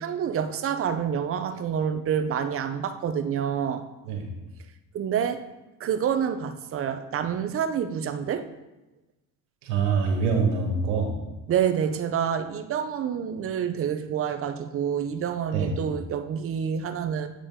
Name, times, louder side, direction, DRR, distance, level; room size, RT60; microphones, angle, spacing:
voice 1, 0.0-3.8 4.9-5.4 5.8-8.5 11.5-17.3, right 8 dB, 35° right, 9 dB, 0.6 m, -27 dB
voice 2, 9.6-11.2 15.5-15.8, right 4 dB, 85° right, 1 dB, 1.8 m, -25 dB
8.3 x 5.2 x 3.7 m, 1.0 s
supercardioid pair, 115°, 41 cm